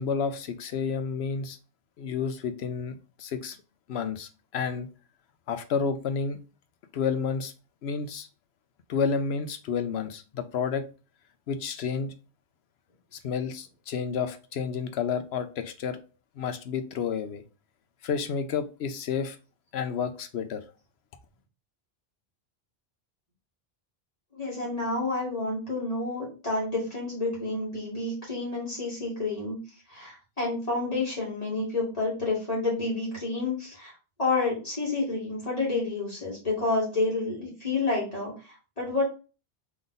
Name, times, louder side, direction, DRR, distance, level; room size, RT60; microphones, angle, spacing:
voice 1, 0.0-1.6 2.0-3.6 3.9-4.9 5.5-6.4 6.9-7.5 7.8-8.3 8.9-10.8 11.5-12.1 13.1-16.0 16.4-17.4 18.0-19.4 19.7-20.6, left 6 dB, 90° left, 0.9 m, -30 dB
voice 2, 24.3-29.6 29.9-33.9 34.2-39.0, left 3 dB, 35° left, 2.3 m, -29 dB
3.8 x 3.5 x 3.9 m
omnidirectional pair, 1.0 m